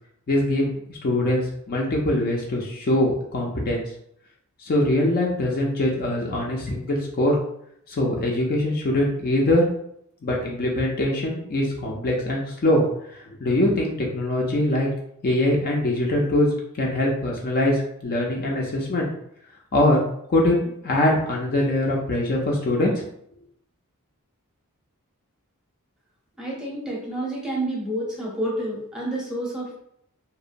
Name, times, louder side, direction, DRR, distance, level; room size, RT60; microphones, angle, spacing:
voice 1, 0.3-3.8 4.6-7.4 7.9-9.7 10.2-12.8 13.1-14.9 15.2-16.5 16.8-19.1 19.7-20.0 20.3-22.9, left 1 dB, 45° left, -1 dB, 0.4 m, -23 dB
voice 2, 26.4-29.7, right 1 dB, 5° right, -5 dB, 0.7 m, -29 dB
2.8 x 2.1 x 2.5 m, 0.72 s
head